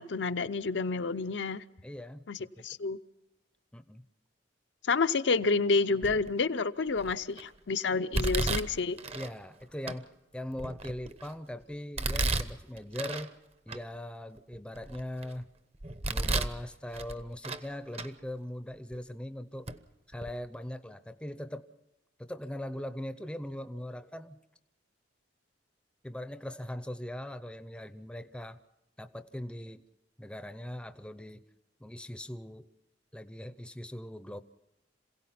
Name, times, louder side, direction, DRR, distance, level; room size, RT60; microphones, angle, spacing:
voice 1, 0.0-1.6 2.3-2.4 2.6-3.0 4.9-9.0, left 4 dB, 70° left, 10 dB, 0.6 m, -29 dB
voice 2, 1.8-2.7 3.7-4.0 9.1-13.3 13.7-15.5 16.1-19.7 20.1-21.7 22.2-24.4 26.0-28.6 29.0-29.8 30.2-31.4 31.8-32.7 33.1-34.4, left 1 dB, 5° left, 11 dB, 0.6 m, -40 dB
Domestic sounds home sounds, 6.0-6.4 7.0-7.4 8.1-9.3 9.9-10.0 10.5-11.3 12.0-13.3 13.7-13.8 14.4-15.3 15.8-16.6 16.9-17.7 17.9-18.1 18.9-19.0 19.7-19.8 20.1-20.3, right 2 dB, 35° right, 0.8 m, -33 dB
27.0 x 17.0 x 5.9 m, 0.97 s
head